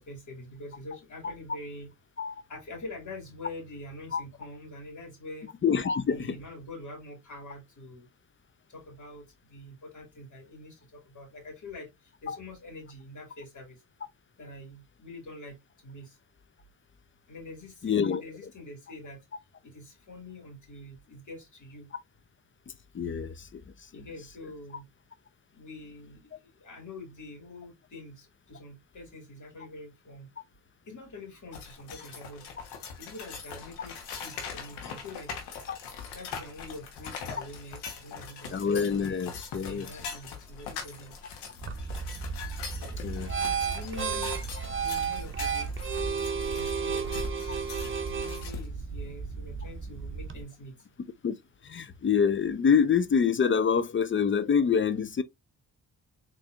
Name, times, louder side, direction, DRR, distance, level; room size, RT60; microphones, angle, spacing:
voice 1, 0.0-1.9 2.5-5.5 6.1-8.1 8.7-11.9 12.2-13.8 14.4-15.6 15.8-16.2 17.3-19.2 19.6-21.9 23.9-24.8 25.5-26.2 26.6-30.3 30.9-32.5 33.0-35.3 36.1-38.5 39.6-41.1 42.8-44.3 44.8-45.7 46.1-47.2 48.1-50.7, left 2 dB, 50° left, 2.2 m, -45 dB
voice 2, 5.6-6.4 12.3-12.4 17.8-18.2 22.9-24.1 35.7-35.8 37.3-37.4 38.5-39.9 43.0-43.4 51.2-51.3 51.6-55.2, left 6 dB, 30° left, 0.5 m, -26 dB
sound 1, 31.5-48.7, left 6 dB, 85° left, 1.2 m, -42 dB
sound 2, 41.6-50.4, right 6 dB, 30° right, 0.7 m, -33 dB
4.2 x 3.1 x 2.5 m
supercardioid pair, 50°, 39 cm